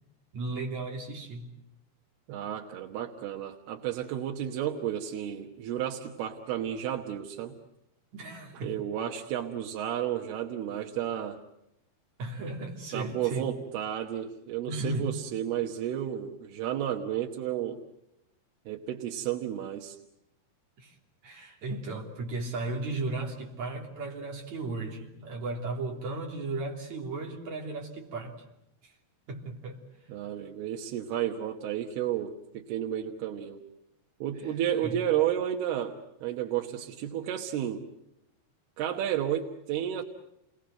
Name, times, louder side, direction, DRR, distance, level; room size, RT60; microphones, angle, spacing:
voice 1, 0.3-1.5 8.1-8.8 12.2-13.5 14.7-15.1 20.8-21.0 21.2-28.4 28.8-28.9 29.3-29.8 34.4-34.6 34.8-35.0, right 2 dB, 50° right, 1 dB, 4.4 m, -35 dB
voice 2, 2.3-7.5 8.5-11.4 12.9-17.8 18.7-20.0 30.1-33.6 34.2-37.8 38.8-40.0, right 10 dB, 85° right, 2 dB, 3.3 m, -32 dB
28.5 x 22.0 x 7.7 m, 0.86 s
omnidirectional pair, 4.4 m